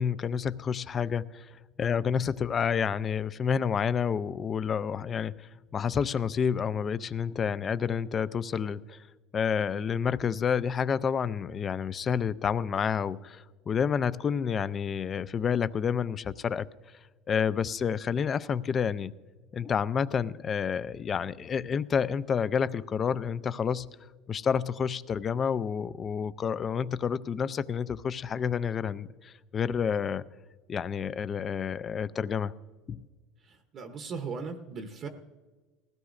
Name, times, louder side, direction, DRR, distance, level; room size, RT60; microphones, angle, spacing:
voice 1, 0.0-1.5 1.8-9.0 9.3-16.7 17.3-19.1 19.5-23.9 24.3-30.2 30.7-32.5 32.9-33.1, left 7 dB, 25° left, 17 dB, 0.4 m, -29 dB
voice 2, 33.4-35.1, right 5 dB, 35° right, 6 dB, 0.8 m, -38 dB
19.5 x 16.0 x 2.5 m, 1.3 s
cardioid pair, 145°, 0 cm